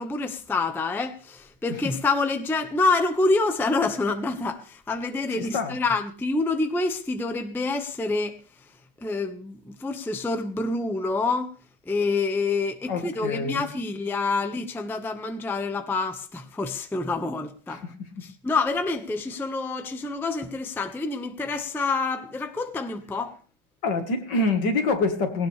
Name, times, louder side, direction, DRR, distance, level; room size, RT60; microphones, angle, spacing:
voice 1, 0.0-8.4 9.0-11.5 11.9-17.8 18.2-23.3, left 3 dB, ahead, 7 dB, 1.0 m, -27 dB
voice 2, 5.3-5.8 12.9-13.6 17.7-18.3 23.8-25.5, left 3 dB, 60° left, 7 dB, 2.3 m, -26 dB
19.0 x 18.0 x 3.4 m, 0.35 s
omnidirectional pair, 2.2 m